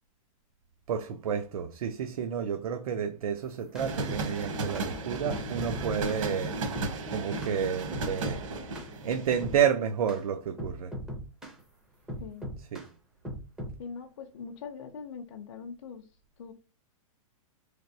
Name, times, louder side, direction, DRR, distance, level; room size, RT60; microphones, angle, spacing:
voice 1, 0.9-8.4 9.0-11.0 12.7-12.9, right 8 dB, 85° right, 0.5 m, -30 dB
sound 1, 3.4-4.3 4.8-4.9 5.3-6.3 6.8-6.9 7.4-7.6 7.9-8.4 8.8-8.9 9.4-9.6 10.1-10.2 10.6-11.6 12.1-12.9 13.3-13.8, equal, 5° right, 0.4 m, -39 dB
sound 2, 3.8-9.6, right 2 dB, 65° right, 1.0 m, -35 dB
voice 2, 12.2-12.5 13.8-16.5, left 6 dB, 50° left, 0.5 m, -42 dB
3.3 x 3.2 x 2.6 m
supercardioid pair, 175°, 18 cm